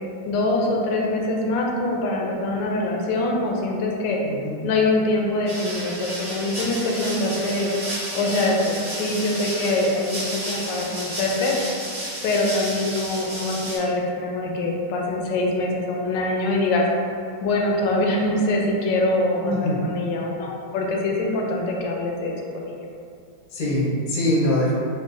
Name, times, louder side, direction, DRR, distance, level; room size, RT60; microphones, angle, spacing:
voice 1, 0.3-4.2 4.6-7.7 8.1-11.6 12.2-16.9 17.4-22.8, left 2 dB, 85° left, -1 dB, 1.3 m, -24 dB
voice 2, 4.2-4.5 19.4-19.8 23.5-24.7, left 1 dB, 55° left, -6 dB, 0.5 m, -23 dB
sound 1, 5.5-13.8, right 1 dB, 45° right, 0.4 m, -32 dB
3.6 x 2.0 x 3.8 m, 2.4 s
omnidirectional pair, 1.9 m